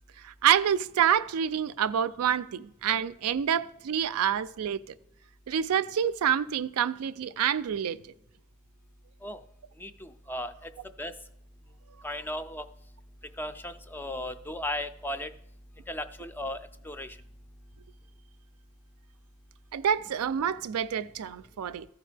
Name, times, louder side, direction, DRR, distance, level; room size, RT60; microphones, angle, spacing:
voice 1, 0.2-4.8 5.5-8.0 19.7-21.9, right 9 dB, 80° right, 0.4 m, -27 dB
voice 2, 9.8-10.7 11.0-11.1 12.0-12.7 13.4-15.3 15.9-17.2, left 1 dB, 10° left, 0.4 m, -36 dB
14.0 x 4.7 x 3.3 m
head